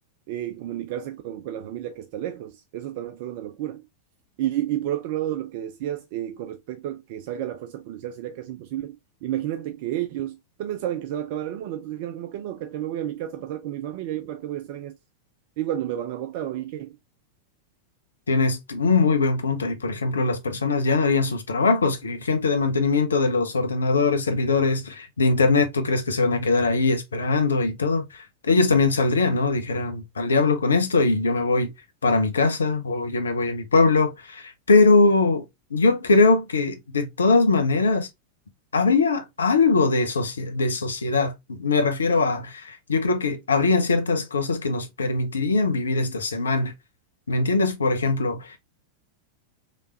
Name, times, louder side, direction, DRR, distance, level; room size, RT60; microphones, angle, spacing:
voice 1, 0.3-3.9 4.4-14.9 15.6-17.0, right 12 dB, 50° right, 0.3 m, -31 dB
voice 2, 18.3-31.7 32.0-35.4 35.7-38.1 38.7-46.7 47.3-48.5, left 3 dB, 70° left, 0.7 m, -21 dB
3.2 x 3.1 x 2.5 m
figure-of-eight pair, 90°, 0 cm